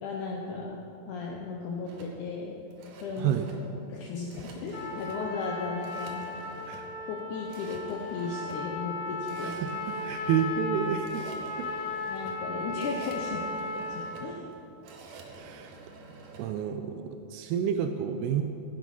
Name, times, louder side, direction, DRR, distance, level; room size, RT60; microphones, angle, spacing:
voice 1, 0.0-0.8 1.1-2.6 3.0-3.4 3.9-6.2 7.1-9.6 12.1-14.5, left 4 dB, 80° left, 0 dB, 1.8 m, -35 dB
sound 1, 1.8-16.5, right 3 dB, 65° right, 2.5 m, -49 dB
Trumpet, 4.7-14.2, left 3 dB, 25° left, 1.9 m, -36 dB
voice 2, 9.6-11.3 11.6-11.7 15.3-15.8 16.4-18.4, right 8 dB, 90° right, 6 dB, 2.6 m, -30 dB
15.0 x 7.5 x 5.4 m, 2.8 s
omnidirectional pair, 4.6 m